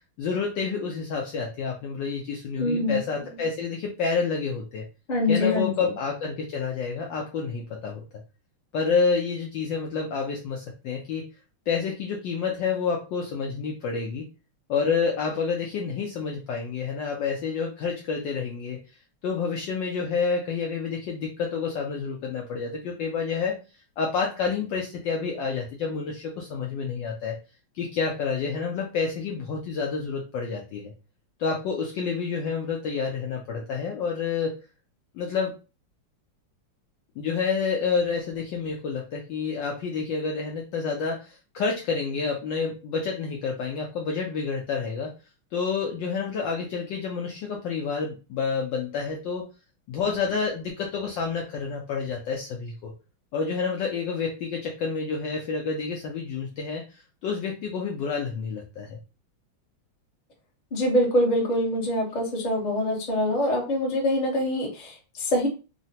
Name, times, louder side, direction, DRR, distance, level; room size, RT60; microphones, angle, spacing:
voice 1, 0.2-4.8 5.3-8.0 8.7-11.2 11.7-14.2 14.7-18.8 19.2-23.6 24.0-27.3 27.7-30.9 31.4-34.6 35.1-35.5 37.2-45.1 45.5-49.5 49.9-52.9 53.3-56.8 57.2-59.0, left 5 dB, 75° left, 0 dB, 1.1 m, -29 dB
voice 2, 2.6-3.0 5.1-5.7 60.7-65.5, left 1 dB, 40° left, -3 dB, 0.6 m, -24 dB
3.8 x 2.1 x 2.7 m, 0.32 s
omnidirectional pair, 2.4 m